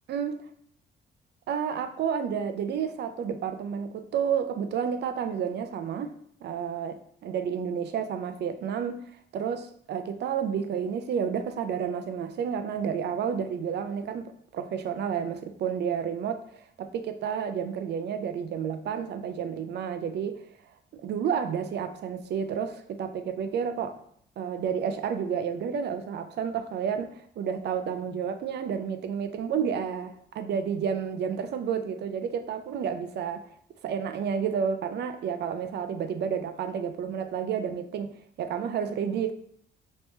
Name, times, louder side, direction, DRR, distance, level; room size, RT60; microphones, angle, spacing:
voice 1, 1.5-6.1 6.4-9.0 9.3-16.4 16.8-20.4 20.9-24.0 24.4-33.4 33.8-38.1 38.4-39.3, right 7 dB, 60° right, 0.4 m, -30 dB
3.5 x 3.0 x 2.6 m
cardioid pair, 90°, 20 cm